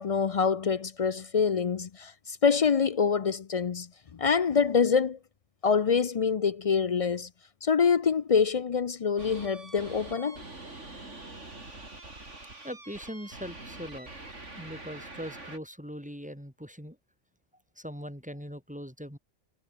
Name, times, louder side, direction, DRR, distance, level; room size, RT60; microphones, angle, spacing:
voice 1, 0.0-5.2 5.6-7.3 7.6-10.4, left 6 dB, 50° left, 0.4 m, -26 dB
sound 1, 9.2-15.6, right 2 dB, 80° right, 5.1 m, -45 dB
voice 2, 12.6-14.1 14.6-17.0 17.8-19.2, equal, 5° right, 4.6 m, -40 dB
omnidirectional pair, 1.2 m